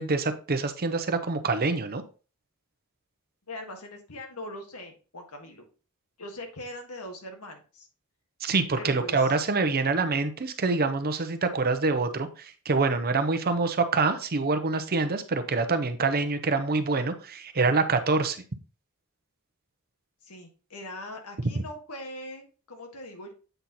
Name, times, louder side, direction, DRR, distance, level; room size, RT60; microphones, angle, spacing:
voice 1, 0.0-2.0 8.4-18.4, right 3 dB, 45° right, 9 dB, 0.8 m, -26 dB
voice 2, 3.5-5.6 6.2-7.9 8.7-9.3 20.2-23.3, left 1 dB, 85° left, 4 dB, 1.6 m, -41 dB
7.9 x 4.3 x 4.0 m, 0.35 s
head